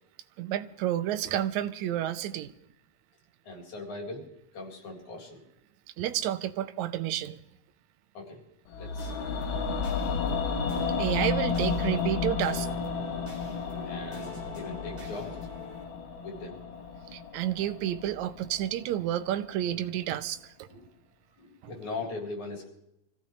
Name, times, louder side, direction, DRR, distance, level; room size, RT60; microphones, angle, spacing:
voice 1, 0.4-2.5 6.0-7.4 11.0-12.7 17.1-20.7 21.6-21.7, right 12 dB, 80° right, 2.1 m, -30 dB
voice 2, 3.5-5.4 8.2-8.4 8.8-9.1 13.8-15.4 16.2-16.6 20.7-20.8 21.4-22.7, left 3 dB, 85° left, 5.2 m, -40 dB
sound 1, 8.7-18.8 19.1-19.2, left 5 dB, 65° left, 1.3 m, -32 dB
sound 2, 9.0-15.8, left 1 dB, 5° right, 5.9 m, -46 dB
25.0 x 15.5 x 3.2 m
omnidirectional pair, 3.3 m